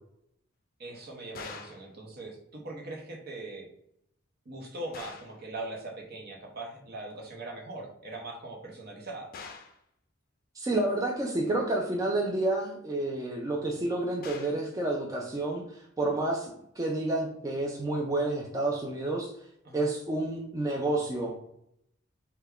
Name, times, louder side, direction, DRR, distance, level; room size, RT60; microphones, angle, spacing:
voice 1, 0.8-3.7 4.4-9.3 19.6-19.9, right 2 dB, 55° right, 0 dB, 0.8 m, -41 dB
sound 1, 1.3-1.9 4.9-5.4 9.3-9.8 14.2-14.7, left 4 dB, 50° left, 0.4 m, -44 dB
voice 2, 10.5-16.5 16.8-19.3 19.7-21.4, right 2 dB, 20° right, -1 dB, 0.4 m, -29 dB
3.3 x 2.2 x 3.5 m, 0.75 s
head